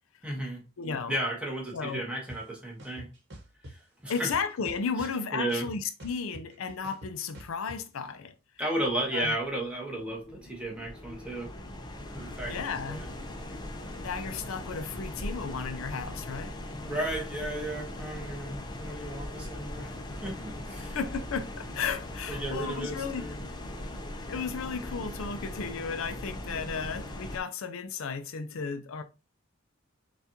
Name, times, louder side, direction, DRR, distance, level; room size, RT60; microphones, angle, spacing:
voice 1, 0.2-0.6 1.1-3.1 3.6-4.3 5.0-5.7 8.6-11.5 12.1-13.0 16.8-20.0 20.2-20.9 22.3-23.4, right 1 dB, 5° right, 1.1 m, -34 dB
voice 2, 0.8-1.2 1.7-2.0 4.1-8.3 9.1-9.4 12.5-13.1 14.0-16.5 20.8-23.3 24.3-29.0, left 5 dB, 75° left, 0.5 m, -34 dB
sound 1, 2.3-2.4 2.8-3.7 4.1-5.2 5.5-7.8, equal, 55° right, 1.2 m, -46 dB
sound 2, 8.8-27.4, left 1 dB, 20° left, 0.5 m, -40 dB
5.6 x 2.4 x 2.8 m
head